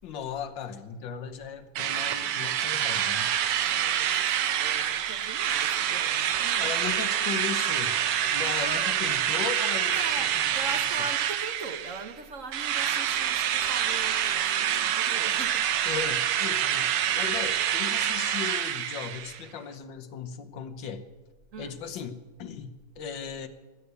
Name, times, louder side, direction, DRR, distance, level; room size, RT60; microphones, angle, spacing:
voice 1, 0.0-3.3 6.6-10.0 10.3-10.8 15.8-21.0 21.6-23.5, left 7 dB, 60° left, 9 dB, 1.8 m, -37 dB
Drill, 1.8-12.1 12.5-19.4, right 10 dB, 80° right, 1.8 m, -27 dB
voice 2, 3.6-7.3 8.6-9.0 9.9-15.7 21.5-21.7, right 4 dB, 45° right, 7 dB, 1.2 m, -40 dB
20.5 x 8.2 x 8.3 m, 1.2 s
omnidirectional pair, 2.4 m